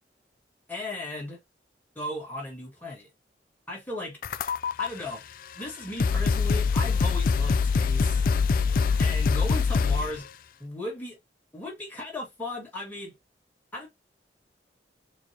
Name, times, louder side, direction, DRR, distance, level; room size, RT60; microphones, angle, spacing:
voice 1, 0.7-1.4 2.0-3.1 3.7-4.2 4.8-5.2 5.6-8.3 9.0-10.3 10.6-11.2 11.5-13.1 13.7-13.9, left 1 dB, 10° left, 1.9 m, -36 dB
sound 1, 4.2-4.9 5.6-5.7 6.0-10.2, left 5 dB, 50° left, 0.3 m, -24 dB
4.4 x 3.2 x 2.8 m
head